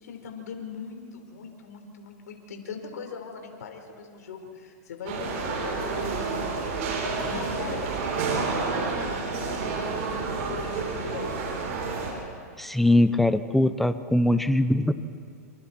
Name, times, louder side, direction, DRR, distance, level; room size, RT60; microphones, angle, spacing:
voice 1, 0.0-6.7 7.2-11.4, left 5 dB, 75° left, 3 dB, 4.3 m, -40 dB
sound 1, 5.1-12.1, right 4 dB, 55° right, 8.0 m, -29 dB
voice 2, 12.6-14.9, left 1 dB, ahead, 12 dB, 0.9 m, -21 dB
28.0 x 27.0 x 4.5 m, 2.4 s
hypercardioid pair, 130°, 9 cm